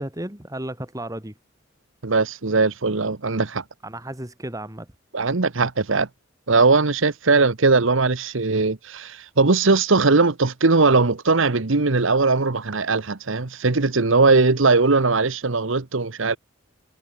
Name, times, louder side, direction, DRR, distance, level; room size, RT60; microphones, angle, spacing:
voice 1, 0.0-1.3 3.8-4.9, right 1 dB, 15° right, 2.5 m, -33 dB
voice 2, 2.0-3.6 5.1-6.1 6.5-16.4, right 3 dB, 70° right, 1.1 m, -19 dB
head